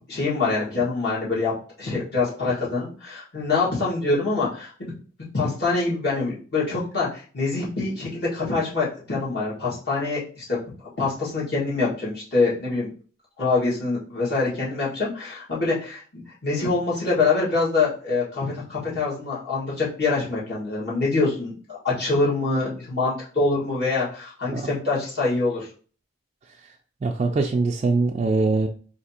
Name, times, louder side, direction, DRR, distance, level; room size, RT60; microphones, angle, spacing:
voice 1, 0.1-1.5 1.8-4.9 5.3-10.4 10.8-12.9 13.4-21.5 21.8-25.7, left 3 dB, 60° left, -7 dB, 1.8 m, -25 dB
voice 2, 27.0-28.7, right 3 dB, 35° right, 0 dB, 0.3 m, -22 dB
3.3 x 2.8 x 4.2 m, 0.40 s
head